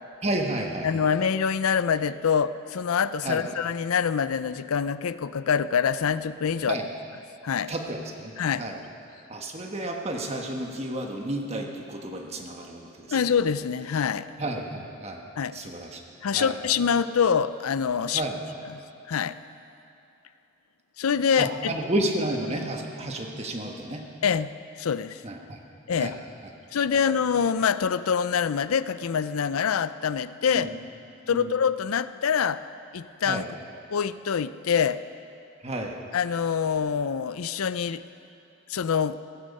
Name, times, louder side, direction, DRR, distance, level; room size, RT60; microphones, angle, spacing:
voice 1, 0.2-0.9 3.2-3.5 6.7-6.8 7.7-8.3 8.6-8.8 9.3-13.2 14.4-15.2 15.5-16.0 16.3-16.5 18.1-18.4 21.4-24.0 25.2-25.6 26.0-26.2 30.5-30.7 31.3-31.5 33.3-33.4 35.6-35.9, right 1 dB, 30° right, 2 dB, 1.4 m, -31 dB
voice 2, 0.8-6.8 7.4-7.7 8.4-8.6 13.1-14.3 15.4-15.6 16.2-18.2 18.7-18.8 19.1-19.4 21.0-21.7 24.2-24.5 24.8-25.2 25.9-26.2 26.7-30.7 31.3-32.6 32.9-33.4 33.9-35.0 36.1-38.0 38.7-39.2, left 7 dB, 85° left, 14 dB, 0.5 m, -25 dB
16.0 x 15.5 x 5.4 m, 2.9 s
head